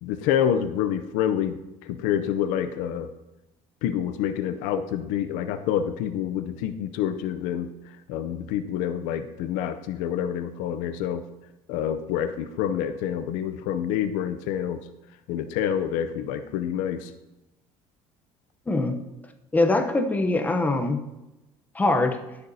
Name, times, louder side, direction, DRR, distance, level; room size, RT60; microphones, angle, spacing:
voice 1, 0.0-3.1 3.8-7.7 8.1-11.2 11.7-14.8 15.3-17.1, left 9 dB, 85° left, 10 dB, 0.6 m, -27 dB
voice 2, 18.7-19.0 19.5-21.0 21.7-22.2, left 2 dB, 15° left, 6 dB, 0.8 m, -23 dB
16.5 x 6.7 x 2.7 m, 0.98 s
cardioid pair, 145°, 13 cm